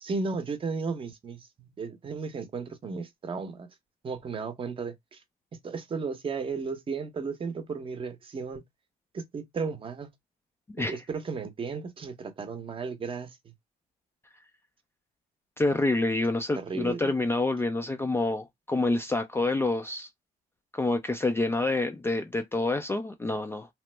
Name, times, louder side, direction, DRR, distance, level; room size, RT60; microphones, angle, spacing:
voice 1, 0.0-3.7 4.0-5.2 5.6-8.6 9.1-10.1 10.8-13.3 16.6-17.1, right 4 dB, 30° right, 0.7 m, -34 dB
voice 2, 15.6-20.1 20.7-23.7, left 2 dB, 15° left, 0.4 m, -27 dB
3.0 x 2.0 x 3.2 m
cardioid pair, 110°, 17 cm